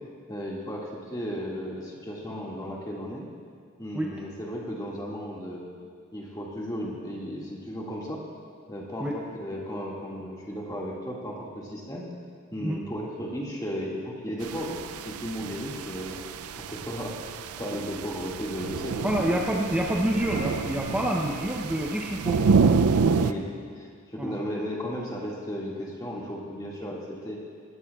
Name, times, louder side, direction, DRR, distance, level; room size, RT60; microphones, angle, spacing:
voice 1, 0.3-3.3 3.8-5.7 6.1-8.2 8.7-12.1 12.5-16.2 16.6-19.6 23.1-27.4, equal, 15° left, -4 dB, 1.9 m, -35 dB
sound 1, 14.4-23.3, right 5 dB, 85° right, 0.4 m, -28 dB
voice 2, 19.0-22.4 24.2-24.4, equal, 5° right, -2 dB, 0.6 m, -27 dB
19.0 x 14.5 x 2.4 m, 2.1 s
head